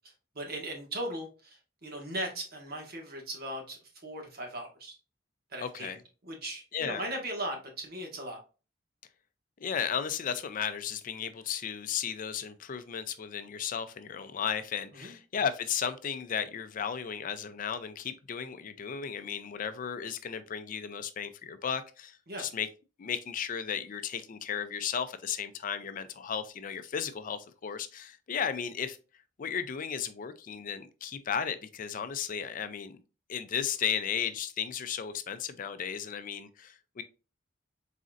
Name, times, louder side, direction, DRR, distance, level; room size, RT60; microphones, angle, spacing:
voice 1, 0.3-5.0 5.5-8.4 14.9-15.1 22.3-22.5, right 1 dB, 55° right, 1.4 m, -38 dB
voice 2, 5.6-6.0 6.7-7.0 9.6-22.7 23.0-29.0 29.4-33.0 33.3-37.0, left 7 dB, 45° left, 0.4 m, -34 dB
4.1 x 3.8 x 2.4 m
head